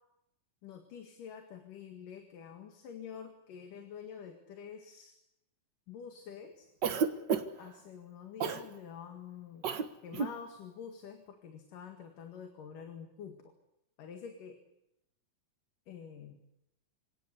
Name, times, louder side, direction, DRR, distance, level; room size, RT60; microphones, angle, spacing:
voice 1, 0.6-5.2 5.9-6.7 7.6-9.7 10.0-13.4 14.0-14.6 15.9-16.4, left 7 dB, 70° left, 5 dB, 3.5 m, -47 dB
Cough, 6.8-7.7 8.4-8.7 9.6-9.9 10.1-10.4, right 6 dB, 65° right, 1.1 m, -31 dB
27.0 x 18.0 x 8.4 m, 0.83 s
omnidirectional pair, 4.0 m